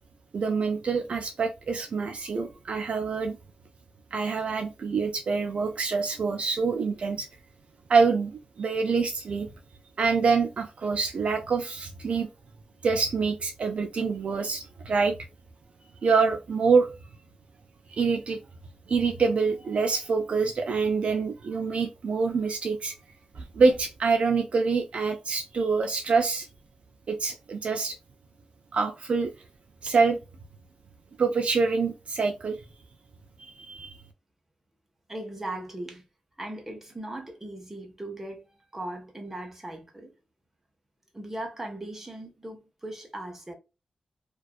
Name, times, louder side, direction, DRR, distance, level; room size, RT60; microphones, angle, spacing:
voice 1, 0.3-3.4 4.1-7.3 7.9-8.3 8.6-9.5 10.0-12.3 12.8-15.2 16.0-16.9 17.9-18.4 18.9-22.9 23.4-26.5 27.1-28.0 28.7-29.3 29.8-30.2 31.2-32.6 33.4-34.0, right 4 dB, 55° right, 0.3 m, -26 dB
voice 2, 35.1-36.0 36.4-38.4 38.7-40.1 41.1-43.5, right 1 dB, 15° right, 0.7 m, -38 dB
2.4 x 2.2 x 2.3 m
wide cardioid pair, 140°, 2 cm